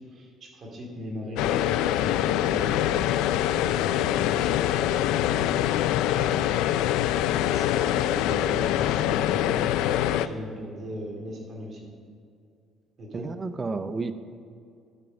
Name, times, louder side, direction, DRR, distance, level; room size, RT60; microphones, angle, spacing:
voice 1, 0.0-3.0 7.5-9.7 10.2-11.9 13.0-13.3, equal, 40° right, -1 dB, 2.5 m, -39 dB
sound 1, 1.4-10.3, left 12 dB, 90° left, 0.3 m, -24 dB
voice 2, 13.1-14.1, right 3 dB, 20° right, 11 dB, 0.6 m, -31 dB
12.0 x 7.8 x 5.1 m, 2.3 s
cardioid pair, 145°, 0 cm